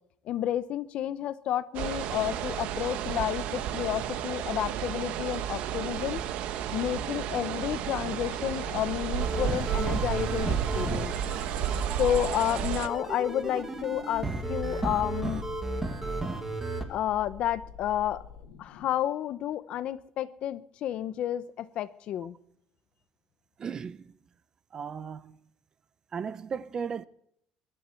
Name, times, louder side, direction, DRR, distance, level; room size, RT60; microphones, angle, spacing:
voice 1, 0.2-6.2 6.7-11.1 12.0-15.4 16.9-18.2 18.6-22.4, left 11 dB, 55° left, 0.9 m, -31 dB
sound 1, 1.7-12.9, right 10 dB, 70° right, 1.2 m, -32 dB
sound 2, 6.8-18.9, left 11 dB, 85° left, 2.2 m, -46 dB
sound 3, 9.2-16.8, right 2 dB, 15° right, 2.0 m, -34 dB
voice 2, 23.6-24.1 24.7-25.4 26.1-27.0, right 6 dB, 30° right, 0.7 m, -36 dB
22.0 x 12.5 x 4.6 m
cardioid pair, 150°, 2 cm